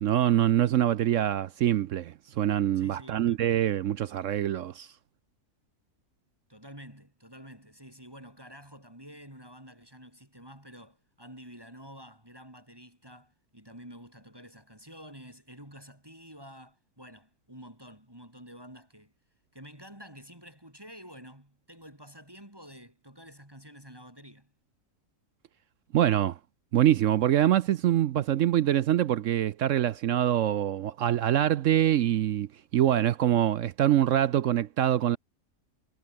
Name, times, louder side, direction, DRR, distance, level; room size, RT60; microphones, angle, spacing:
voice 1, 0.0-4.9 25.9-26.3 26.7-32.5 32.7-35.2, right 11 dB, 65° right, 0.8 m, -24 dB
voice 2, 2.7-3.5 6.5-19.1 19.5-24.5, equal, 15° right, 4.3 m, -49 dB
omnidirectional pair, 1.7 m